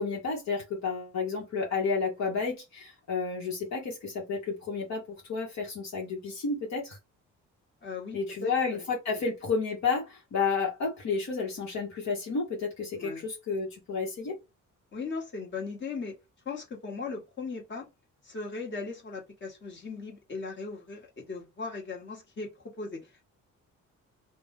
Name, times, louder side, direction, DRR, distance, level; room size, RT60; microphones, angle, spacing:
voice 1, 0.0-5.0 5.3-7.0 8.1-14.4, left 4 dB, 65° left, 1.2 m, -31 dB
voice 2, 7.8-9.2 12.9-13.2 14.9-16.1 16.4-17.9 18.2-23.2, left 4 dB, 40° left, 1.4 m, -38 dB
2.6 x 2.3 x 3.3 m
cardioid pair, 90°, 30 cm